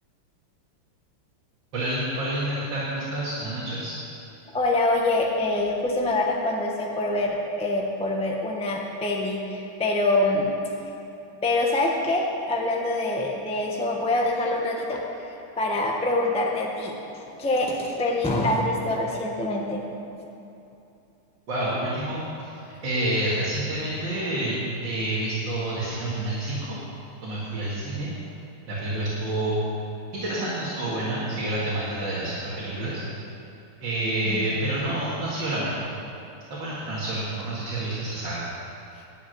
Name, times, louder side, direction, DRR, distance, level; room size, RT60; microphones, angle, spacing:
voice 1, 1.7-3.9 21.5-26.8 27.2-28.1 28.7-29.6 30.1-33.0 33.8-35.8 36.5-38.4, right 1 dB, 60° right, -8 dB, 2.5 m, -28 dB
voice 2, 4.5-10.5 11.4-19.8 34.2-34.4, left 2 dB, 5° left, -1 dB, 0.5 m, -25 dB
11.0 x 6.6 x 9.2 m, 2.8 s
omnidirectional pair, 2.4 m